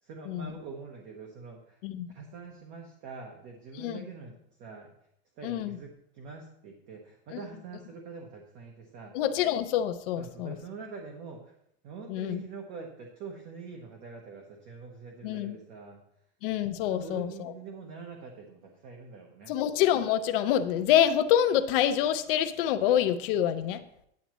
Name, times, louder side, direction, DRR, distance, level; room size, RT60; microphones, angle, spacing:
voice 1, 0.0-1.8 2.1-4.9 5.4-9.1 10.2-11.5 11.8-16.0 16.8-19.6, right 4 dB, 35° right, 2 dB, 1.1 m, -44 dB
voice 2, 5.4-5.8 9.1-10.6 12.1-12.4 15.2-15.6 16.4-17.5 19.5-23.8, left 10 dB, 60° left, 9 dB, 0.7 m, -26 dB
10.5 x 9.4 x 3.1 m, 0.73 s
supercardioid pair, 170°, 32 cm